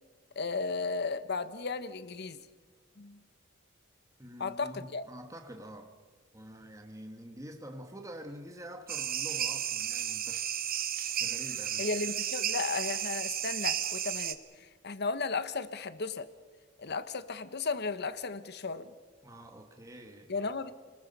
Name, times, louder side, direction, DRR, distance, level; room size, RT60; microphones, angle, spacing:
voice 1, 0.4-2.4 3.0-3.2 4.4-5.1 11.8-14.4 14.8-16.3 16.8-18.9 20.3-20.7, left 4 dB, 55° left, 1.1 m, -34 dB
voice 2, 4.2-5.9 6.3-10.5 11.1-11.9 19.2-20.3, equal, 15° right, 1.4 m, -46 dB
sound 1, 8.9-14.4, right 10 dB, 50° right, 1.1 m, -33 dB
30.0 x 20.5 x 5.5 m
head